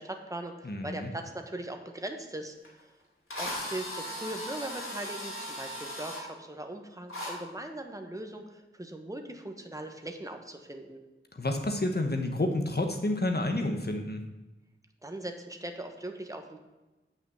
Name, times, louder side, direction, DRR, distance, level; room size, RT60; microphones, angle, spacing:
voice 1, 0.0-2.9 3.4-11.0 15.0-16.6, right 1 dB, 15° right, 4 dB, 1.2 m, -40 dB
voice 2, 0.6-1.1 11.3-14.2, left 1 dB, 50° left, 5 dB, 1.2 m, -29 dB
Drill, 2.6-2.7 3.3-6.2 7.1-7.3, equal, 85° left, 2.6 m, -37 dB
8.9 x 5.8 x 7.1 m, 1.1 s
wide cardioid pair, 60°, 21 cm